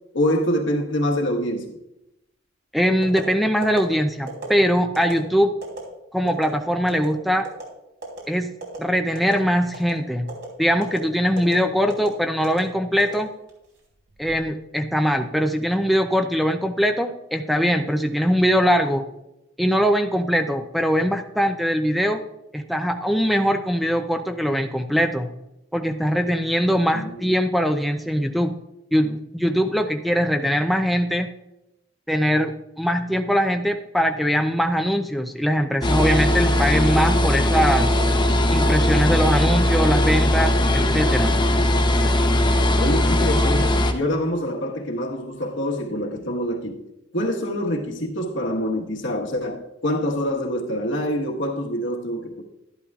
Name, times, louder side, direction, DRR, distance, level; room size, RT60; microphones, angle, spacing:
voice 1, 0.1-1.8 26.9-27.2 42.8-46.8 47.1-52.4, equal, 70° left, 1.4 m, -25 dB
voice 2, 2.7-5.5 6.1-7.5 8.3-8.5 8.8-10.3 10.6-13.3 14.2-19.1 19.6-22.2 22.5-25.3 25.7-28.6 28.9-31.3 32.1-37.9 38.5-41.3, equal, ahead, 0.4 m, -21 dB
sound 1, 3.0-3.2 3.6-3.8 4.3-4.5 4.9-5.1 5.6-5.8 6.3-6.5 6.9-7.1 7.4-7.7 8.0-8.2 8.6-8.8 9.1-9.4 9.7-9.9 10.3-10.5 10.8-11.0 11.4-11.5 11.9-12.1 12.4-12.6 13.0-13.6 14.1-14.4, right 3 dB, 70° right, 3.5 m, -35 dB
sound 2, 35.8-43.9, left 1 dB, 25° left, 0.8 m, -19 dB
12.5 x 11.5 x 2.4 m
head